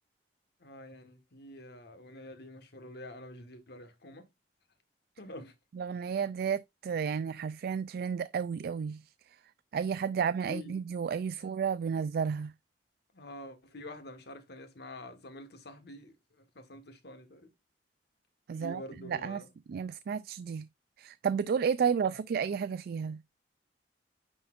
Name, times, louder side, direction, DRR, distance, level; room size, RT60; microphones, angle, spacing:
voice 1, 0.6-4.3 5.2-5.5 10.1-10.7 13.1-17.5 18.5-19.5 22.0-22.2, left 1 dB, 65° left, 1.5 m, -47 dB
voice 2, 5.7-9.0 9.7-12.5 18.5-19.4 19.7-20.7 21.0-23.2, right 6 dB, 60° right, 0.3 m, -32 dB
9.9 x 4.3 x 2.4 m
head